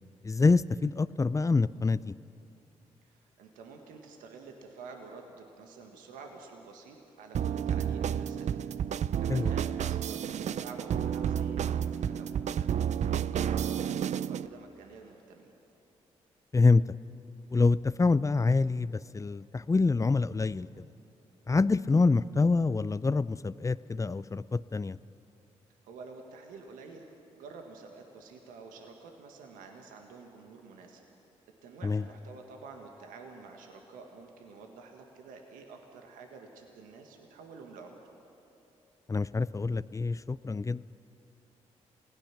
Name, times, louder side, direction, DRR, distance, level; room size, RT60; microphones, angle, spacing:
voice 1, 0.2-2.2 9.3-9.5 16.5-17.0 17.5-20.8 21.5-25.0 31.8-32.0 39.1-40.8, left 3 dB, 25° left, 18 dB, 0.5 m, -26 dB
voice 2, 3.1-8.5 9.2-12.7 13.3-15.5 25.8-27.1 27.3-31.0 31.6-37.9, right 4 dB, 85° right, 3 dB, 1.7 m, -49 dB
sound 1, 7.3-14.5, right 9 dB, 60° right, 0.5 m, -31 dB
27.5 x 17.5 x 6.0 m, 2.9 s
supercardioid pair, 50°, 14 cm